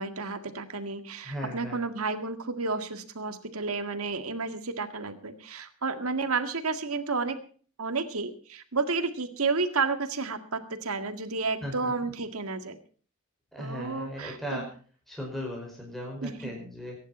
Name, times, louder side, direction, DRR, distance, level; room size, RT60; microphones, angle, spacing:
voice 1, 0.0-7.4 7.8-12.8 13.6-14.7 16.2-16.5, right 4 dB, 75° right, 8 dB, 1.9 m, -31 dB
voice 2, 1.2-1.8 11.6-12.1 13.5-14.6 15.1-17.0, equal, ahead, -2 dB, 5.4 m, -37 dB
22.5 x 11.0 x 4.3 m, 0.43 s
head